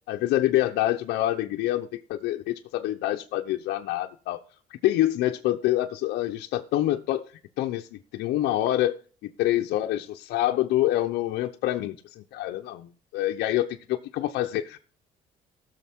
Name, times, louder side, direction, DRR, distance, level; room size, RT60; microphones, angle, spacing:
voice 1, 0.1-4.4 4.8-8.9 9.2-14.8, left 14 dB, 80° left, 0.8 m, -26 dB
17.0 x 6.6 x 3.6 m
cardioid pair, 110°, 17 cm